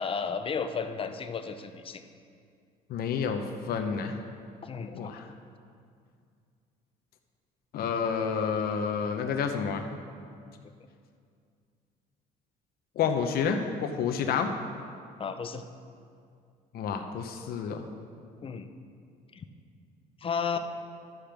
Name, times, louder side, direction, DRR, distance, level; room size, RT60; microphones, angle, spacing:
voice 1, 0.0-2.0 4.6-5.1 15.2-15.6 18.4-18.7 19.3-19.4 20.2-20.6, left 6 dB, 30° left, 8 dB, 0.6 m, -33 dB
voice 2, 2.9-4.2 4.9-5.3 7.7-9.8 13.0-14.5 16.7-17.9, left 6 dB, 65° left, 4 dB, 0.8 m, -29 dB
12.5 x 5.1 x 5.9 m, 2.3 s
cardioid pair, 110°, 17 cm